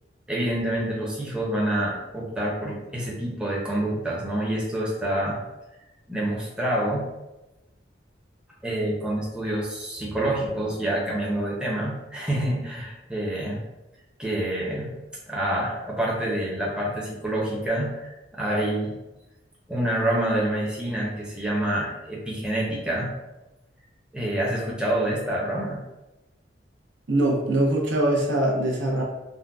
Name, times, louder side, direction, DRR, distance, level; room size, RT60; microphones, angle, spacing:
voice 1, 0.3-5.4 6.1-7.1 8.6-13.6 14.2-14.9 15.3-19.0 19.7-23.1 24.1-25.8, right 1 dB, 5° right, -5 dB, 0.5 m, -27 dB
voice 2, 27.1-29.0, right 1 dB, 90° right, -2 dB, 0.7 m, -22 dB
3.7 x 2.0 x 2.3 m, 1.0 s
head